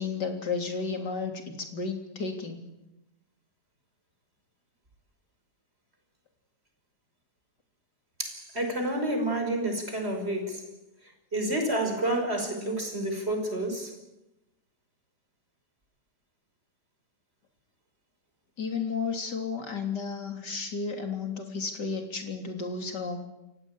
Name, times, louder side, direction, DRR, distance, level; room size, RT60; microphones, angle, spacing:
voice 1, 0.0-1.3 1.7-2.6 18.6-23.2, left 5 dB, 75° left, 4 dB, 4.0 m, -32 dB
voice 2, 8.2-10.6 11.3-13.9, right 1 dB, 35° right, 4 dB, 5.9 m, -29 dB
29.0 x 16.0 x 9.0 m, 0.94 s
omnidirectional pair, 1.8 m